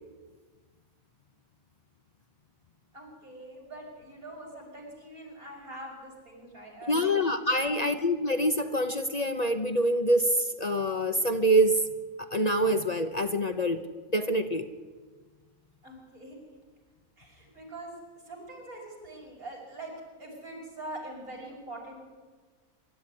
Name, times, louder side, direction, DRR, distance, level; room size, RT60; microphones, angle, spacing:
voice 1, 2.9-7.1 7.5-7.9 15.8-16.4 17.2-17.9 18.3-19.9 20.2-22.1, right 1 dB, 90° right, -2 dB, 6.2 m, -43 dB
voice 2, 6.9-11.9 12.3-13.8 14.1-14.7, equal, 35° left, 8 dB, 0.8 m, -25 dB
23.5 x 12.5 x 9.8 m, 1.4 s
omnidirectional pair, 1.5 m